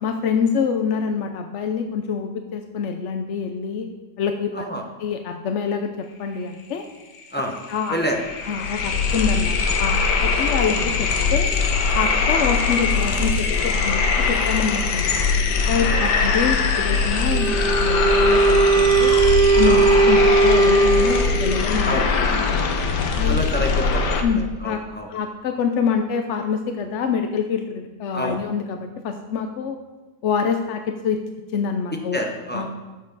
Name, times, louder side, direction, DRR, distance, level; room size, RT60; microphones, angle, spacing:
voice 1, 0.0-3.9 4.2-4.7 5.0-5.9 6.2-6.8 7.7-8.0 8.5-11.5 11.9-15.1 15.7-19.1 19.5-22.0 23.2-23.4 24.2-24.8 25.1-29.8 30.2-31.2 31.5-32.2 32.5-32.7, left 6 dB, 65° left, 6 dB, 0.7 m, -25 dB
voice 2, 4.5-4.8 7.3-7.6 7.9-8.2 12.3-12.5 15.9-16.1 19.6-19.8 21.8-22.1 23.2-24.2 24.6-25.1 28.1-28.4 32.1-32.7, equal, 10° left, 0 dB, 0.6 m, -27 dB
sound 1, 7.2-7.3 7.5-24.2, left 4 dB, 90° left, 1.5 m, -21 dB
Wind instrument woodwind instrument, 17.3-21.7, right 4 dB, 75° right, 1.2 m, -18 dB
13.0 x 6.6 x 4.0 m, 1.2 s
omnidirectional pair, 1.8 m